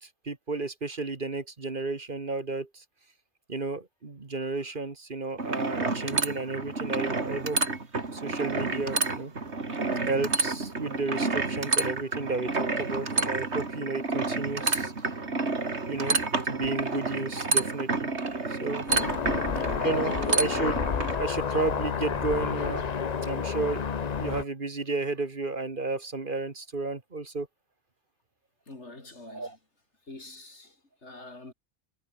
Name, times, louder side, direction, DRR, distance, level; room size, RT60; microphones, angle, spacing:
voice 1, 0.0-2.8 3.5-7.6 8.1-9.3 10.1-14.9 15.9-16.2 16.4-18.1 18.5-18.9 19.8-20.9 21.2-27.5 29.2-29.6, right 3 dB, 45° right, 2.0 m, -32 dB
sound 1, 5.4-21.2, right 3 dB, 65° right, 3.1 m, -29 dB
sound 2, 18.9-24.4, left 6 dB, 40° left, 0.8 m, -30 dB
voice 2, 19.2-19.6 19.9-20.1 28.7-29.6 30.1-31.5, left 2 dB, 70° left, 4.5 m, -46 dB
omnidirectional pair, 1.2 m